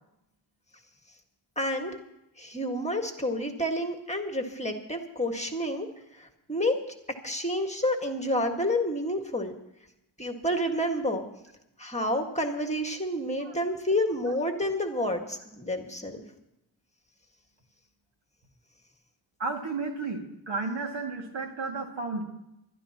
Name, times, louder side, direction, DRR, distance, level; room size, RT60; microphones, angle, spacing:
voice 1, 1.5-2.0 2.4-5.9 6.1-6.8 7.2-9.5 10.2-11.2 11.8-16.2, left 1 dB, 15° left, 4 dB, 1.7 m, -29 dB
voice 2, 19.4-22.2, right 3 dB, 75° right, 2 dB, 2.3 m, -33 dB
28.0 x 12.5 x 3.0 m, 0.87 s
wide cardioid pair, 90°, 45 cm